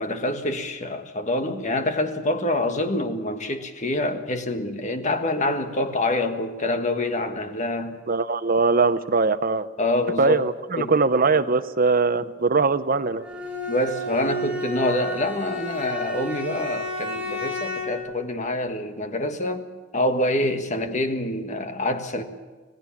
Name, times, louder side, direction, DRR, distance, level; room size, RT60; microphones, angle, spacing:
voice 1, 0.0-8.0 9.8-10.4 10.7-10.9 12.1-12.3 13.7-19.6 19.9-22.2, left 1 dB, 35° left, 7 dB, 1.6 m, -26 dB
voice 2, 8.1-9.7 10.2-13.2, right 4 dB, 45° right, 13 dB, 0.7 m, -21 dB
Bowed string instrument, 13.2-18.1, equal, 5° right, 4.4 m, -31 dB
26.0 x 17.0 x 7.3 m, 1.4 s
head